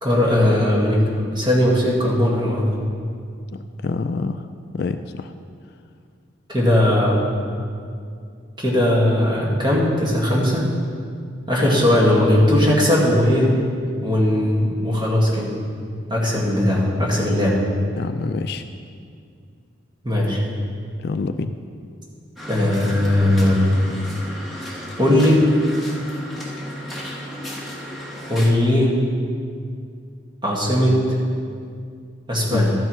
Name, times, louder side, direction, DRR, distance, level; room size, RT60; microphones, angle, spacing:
voice 1, 0.0-2.8 6.5-7.2 8.6-10.6 11.5-13.5 14.0-15.5 16.1-17.5 20.0-20.4 22.5-23.7 25.0-25.4 28.3-29.0 30.4-31.0 32.3-32.7, left 1 dB, 20° right, -5 dB, 2.0 m, -18 dB
voice 2, 3.5-4.5 4.7-5.3 17.2-17.3 18.0-18.6 21.0-21.6 32.5-32.6, left 4 dB, 50° left, 9 dB, 0.3 m, -27 dB
sound 1, 22.4-28.5, equal, ahead, 1.5 m, -34 dB
13.5 x 9.7 x 3.2 m, 2.3 s
head